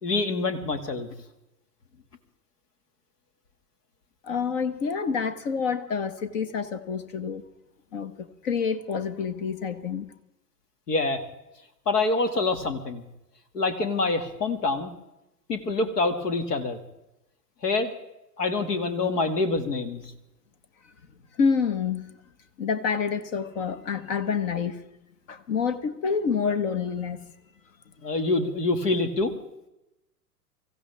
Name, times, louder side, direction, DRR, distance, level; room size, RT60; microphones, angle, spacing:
voice 1, 0.0-1.1 10.9-11.2 11.9-13.0 13.5-14.9 15.5-16.8 17.6-17.9 18.4-20.0 28.0-29.3, left 3 dB, 70° left, 8 dB, 2.4 m, -26 dB
voice 2, 4.2-7.4 7.9-10.1 21.4-22.1 22.6-24.8 25.3-27.3, left 6 dB, 50° left, 12 dB, 1.6 m, -28 dB
24.5 x 15.5 x 3.5 m, 0.91 s
hypercardioid pair, 110°, 48 cm